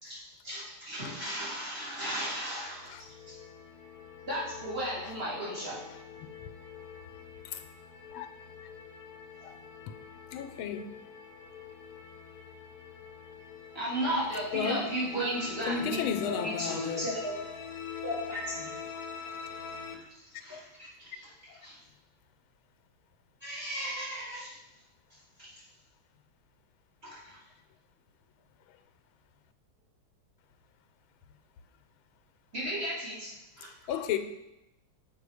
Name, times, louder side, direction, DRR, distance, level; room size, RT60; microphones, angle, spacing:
voice 1, 0.0-2.9 3.3-3.4 4.3-5.8 13.7-16.0 16.3-17.4 18.0-18.7 20.4-21.3 21.6-21.8 23.4-24.5 25.4-25.5 27.0-27.2 32.5-33.3 33.6-33.7, right 1 dB, 30° right, 3.8 m, -35 dB
sound 1, 2.6-19.9, left 6 dB, 55° left, 1.2 m, -45 dB
voice 2, 10.3-11.0 14.5-14.9 15.7-17.1 20.5-20.6 21.5-21.6 33.9-34.2, left 8 dB, 90° left, 1.5 m, -33 dB
7.5 x 5.6 x 4.9 m
omnidirectional pair, 2.2 m